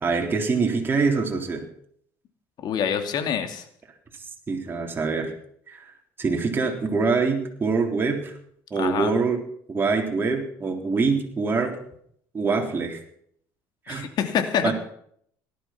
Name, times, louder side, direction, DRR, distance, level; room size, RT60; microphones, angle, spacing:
voice 1, 0.0-1.6 4.5-5.3 5.7-5.8 6.2-8.4 8.7-9.4 9.7-11.8 12.3-13.0 13.9-14.1 14.6-14.7, right 4 dB, 25° right, 1 dB, 3.6 m, -24 dB
voice 2, 2.6-3.7 8.7-9.1 13.9-14.7, left 8 dB, 55° left, 7 dB, 2.6 m, -26 dB
18.0 x 12.0 x 5.9 m, 0.67 s
supercardioid pair, 105°, 9 cm